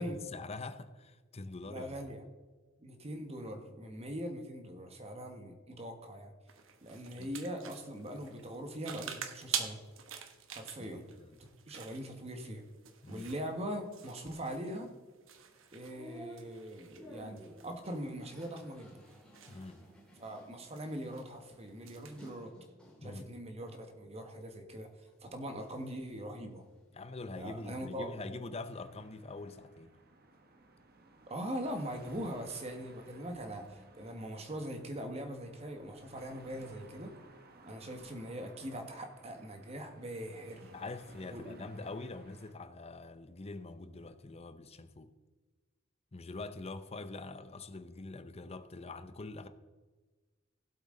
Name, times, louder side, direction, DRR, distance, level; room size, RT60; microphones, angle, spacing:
voice 1, 0.0-2.2 7.2-7.3 10.8-10.9 11.2-11.4 13.0-13.3 19.5-19.8 23.0-23.3 26.9-29.9 40.7-45.1 46.1-49.5, left 3 dB, 30° left, 0.6 m, -44 dB
voice 2, 1.7-2.2 2.8-6.3 6.8-9.8 10.5-11.0 11.4-12.6 13.1-14.9 15.7-19.0 20.2-22.5 23.0-24.9 25.2-26.6 27.4-28.1 31.3-37.1 37.6-40.7 41.3-41.6, equal, 30° right, 1.4 m, -42 dB
sound 1, 6.5-22.3, right 8 dB, 75° right, 1.1 m, -47 dB
sound 2, 15.3-23.2 23.7-24.5 24.9-27.8 28.1-29.3, right 1 dB, 5° left, 2.6 m, -56 dB
sound 3, 28.7-42.5, right 2 dB, 50° right, 1.0 m, -59 dB
16.5 x 8.0 x 3.8 m
head